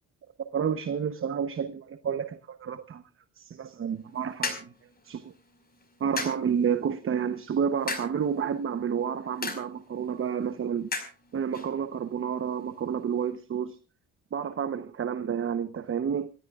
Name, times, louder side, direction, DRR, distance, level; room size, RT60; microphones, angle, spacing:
voice 1, 0.4-3.0 3.4-4.7 5.0-5.3 6.0-11.0 11.3-13.8 14.3-16.3, right 7 dB, 45° right, 0.9 m, -30 dB
sound 1, 3.9-13.3, left 3 dB, 30° left, 5.0 m, -40 dB
27.5 x 13.0 x 2.4 m
cardioid pair, 90°, 30 cm